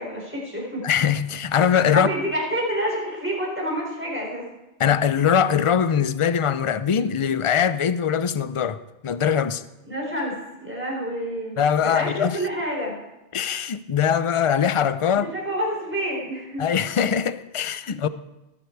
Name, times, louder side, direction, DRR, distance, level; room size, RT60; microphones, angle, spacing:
voice 1, 0.0-0.8 1.9-4.5 9.9-13.0 15.2-16.7 17.9-18.0, equal, 10° right, 4.4 m, -28 dB
voice 2, 0.8-2.1 4.8-8.8 9.0-9.6 11.6-12.4 13.3-15.3 16.6-18.1, left 8 dB, 45° left, 0.4 m, -22 dB
19.5 x 9.9 x 4.7 m
omnidirectional pair, 1.2 m